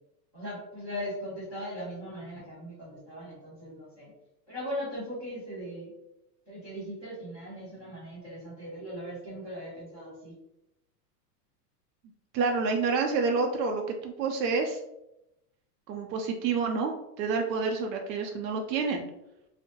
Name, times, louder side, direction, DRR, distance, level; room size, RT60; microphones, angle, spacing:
voice 1, 0.3-4.1 4.5-5.9 6.5-10.3, equal, 10° right, -14 dB, 0.3 m, -39 dB
voice 2, 12.3-14.8 15.9-19.0, right 4 dB, 90° right, 3 dB, 0.6 m, -28 dB
2.6 x 2.1 x 2.6 m, 0.87 s
supercardioid pair, 160°, 49 cm